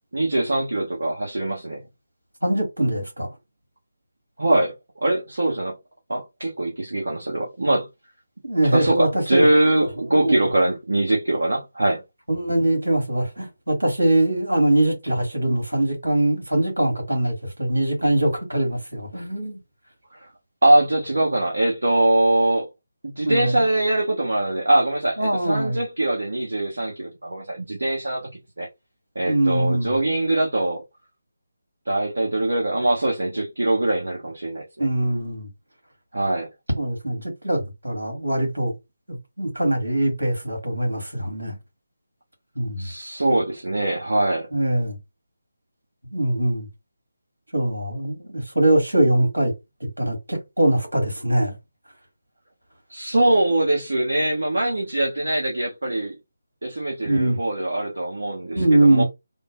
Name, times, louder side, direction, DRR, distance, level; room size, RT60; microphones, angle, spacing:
voice 1, 0.1-1.8 4.4-4.7 5.0-5.8 6.1-7.9 8.7-12.0 20.1-20.3 20.6-22.7 23.0-28.7 29.1-30.8 31.9-34.9 36.1-36.5 42.8-44.5 52.9-56.2 56.6-59.0, right 1 dB, 60° right, 1.2 m, -22 dB
voice 2, 2.4-3.3 8.4-9.5 10.1-10.3 12.3-19.6 23.2-23.6 25.2-25.8 29.3-30.0 34.8-35.5 36.8-38.7 39.1-41.6 42.6-42.9 44.5-45.0 46.1-46.7 47.5-49.5 49.8-51.6 57.0-57.4 58.5-59.0, right 1 dB, 80° right, 2.2 m, -22 dB
3.7 x 2.1 x 3.8 m
figure-of-eight pair, 150°, 0 cm